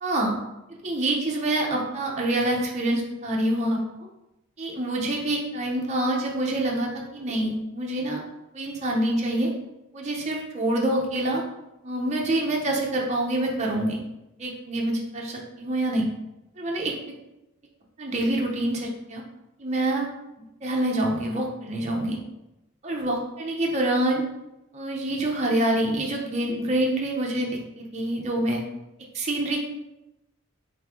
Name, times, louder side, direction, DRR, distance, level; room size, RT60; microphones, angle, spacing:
voice 1, 0.0-0.3 0.8-3.8 4.6-8.2 8.5-9.5 9.9-11.4 11.8-14.0 14.4-16.1 16.6-16.9 18.0-19.2 19.6-20.1 20.6-22.2 22.8-24.2 24.7-28.6 29.1-29.6, right 1 dB, 30° right, -1 dB, 0.6 m, -26 dB
3.3 x 3.1 x 3.6 m, 0.93 s
head